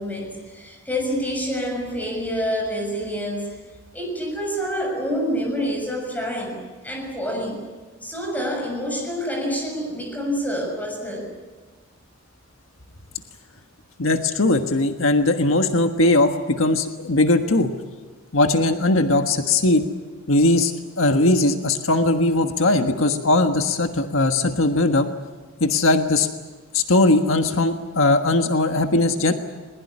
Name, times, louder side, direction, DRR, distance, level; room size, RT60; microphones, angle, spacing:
voice 1, 0.0-3.6 3.9-7.7 8.0-11.3, equal, 10° left, 2 dB, 6.7 m, -27 dB
voice 2, 14.0-17.7 18.3-19.8 20.3-20.7 21.0-25.1 25.6-26.3 26.7-29.3, left 2 dB, 85° left, 6 dB, 1.5 m, -19 dB
21.0 x 21.0 x 9.9 m, 1.3 s
head